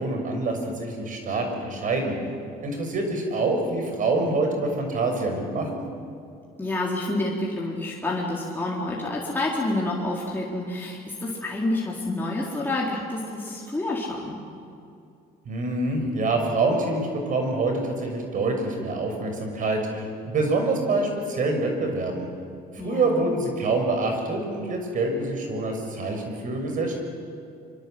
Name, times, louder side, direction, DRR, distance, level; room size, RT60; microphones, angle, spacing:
voice 1, 0.0-2.1 2.6-5.8 15.4-22.3 22.7-26.9, right 2 dB, 50° right, 4 dB, 6.3 m, -26 dB
voice 2, 6.6-14.4 22.8-23.3, left 2 dB, 10° left, -5 dB, 4.0 m, -28 dB
25.0 x 25.0 x 7.9 m, 2.5 s
cardioid pair, 110°, 17 cm